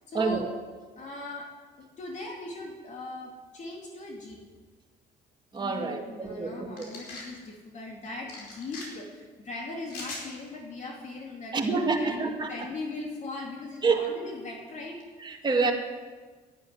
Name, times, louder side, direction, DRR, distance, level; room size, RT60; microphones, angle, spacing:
voice 1, 0.1-0.5 1.0-1.5 1.8-4.4 5.6-15.0, left 2 dB, 45° left, 0 dB, 2.7 m, -39 dB
voice 2, 5.5-6.9 11.5-12.5 13.8-14.1 15.2-15.7, right 4 dB, 25° right, 2 dB, 2.3 m, -27 dB
sound 1, 6.8-7.3 8.3-8.9 9.9-10.2, left 3 dB, 85° left, 5.0 m, -40 dB
11.5 x 11.0 x 9.7 m, 1.4 s
cardioid pair, 110°, 17 cm